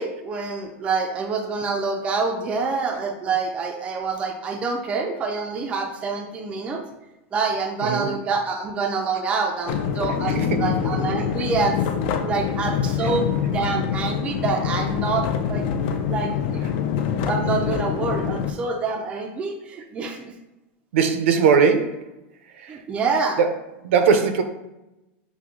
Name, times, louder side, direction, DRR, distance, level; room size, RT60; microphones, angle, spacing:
voice 1, 0.0-6.8 7.3-11.8 12.2-15.7 16.1-20.3 22.7-23.4, right 4 dB, 15° right, 3 dB, 0.4 m, -26 dB
sound 1, 9.7-18.5, left 7 dB, 50° left, 0.4 m, -25 dB
voice 2, 20.9-22.1 22.5-22.8 23.4-23.5 23.8-24.4, right 6 dB, 75° right, 7 dB, 0.6 m, -19 dB
5.8 x 2.1 x 3.6 m, 0.96 s
supercardioid pair, 160°, 7 cm